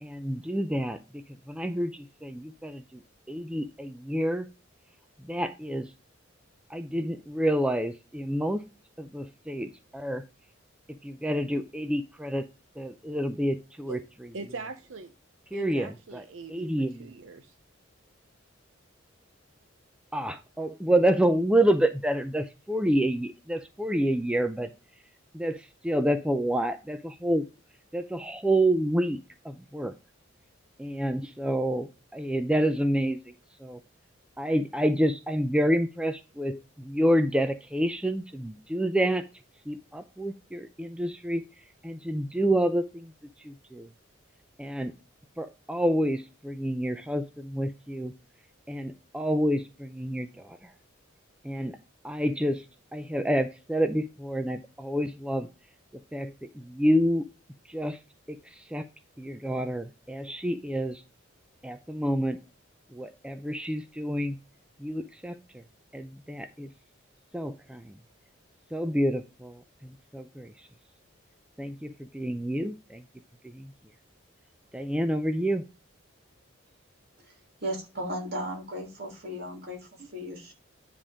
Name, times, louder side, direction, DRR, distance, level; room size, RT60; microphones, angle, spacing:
voice 1, 0.0-1.2 1.5-3.0 3.3-4.5 5.3-5.9 6.7-8.6 9.0-10.2 11.0-12.4 12.8-14.0 15.5-16.2 16.5-17.1 20.1-24.7 25.3-27.5 27.9-29.2 29.4-29.9 30.8-33.2 33.6-33.8 34.4-39.2 39.7-41.4 41.8-43.1 43.4-43.9 44.6-44.9 45.4-48.1 48.7-50.7 51.4-51.8 52.0-52.6 52.9-55.5 56.1-57.2 57.7-58.0 58.3-58.9 59.2-61.0 61.6-62.4 62.9-64.4 64.8-65.4 65.9-66.7 67.3-67.9 68.7-70.7 71.6-73.0 73.4-73.7 74.7-75.6, right 1 dB, 5° right, 9 dB, 0.4 m, -28 dB
voice 2, 14.3-15.1 15.5-17.5, right 4 dB, 70° right, 9 dB, 0.7 m, -42 dB
voice 3, 77.6-80.5, equal, 50° right, 2 dB, 2.9 m, -36 dB
10.0 x 3.6 x 4.9 m, 0.31 s
head